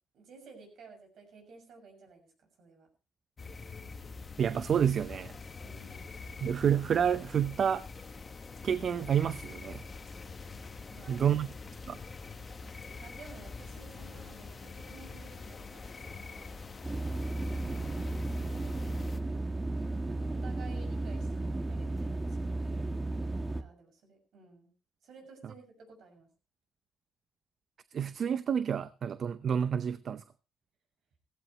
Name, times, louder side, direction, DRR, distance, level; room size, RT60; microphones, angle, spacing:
voice 1, 0.1-2.9 5.6-6.1 10.9-11.4 13.0-16.5 18.4-18.9 20.1-22.8 23.6-24.7 25.0-26.3, right 4 dB, 70° right, 6.6 m, -54 dB
sound 1, 3.4-19.2, left 4 dB, 35° left, 1.4 m, -45 dB
voice 2, 4.4-5.3 6.4-7.9 8.6-9.8 11.1-11.5 11.9-12.0 27.9-30.2, right 8 dB, 55° right, 0.6 m, -29 dB
sound 2, 16.8-23.6, right 2 dB, 20° right, 1.7 m, -34 dB
16.0 x 15.5 x 3.1 m
cardioid pair, 90°, 0 cm